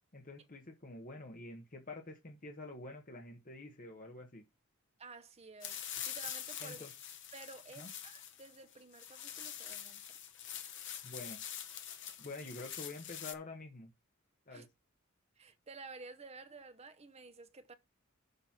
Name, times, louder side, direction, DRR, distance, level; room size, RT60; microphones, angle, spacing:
voice 1, 0.1-4.4 6.6-6.9 7.8-7.9 11.0-11.4 12.2-13.9 14.5-14.6, left 2 dB, 40° left, 1.2 m, -47 dB
voice 2, 5.0-5.8 6.1-6.8 7.3-10.0 14.5-14.7 15.4-17.7, right 3 dB, 30° right, 0.8 m, -52 dB
sound 1, 5.6-13.3, left 9 dB, 60° left, 0.9 m, -45 dB
6.9 x 5.4 x 5.9 m
head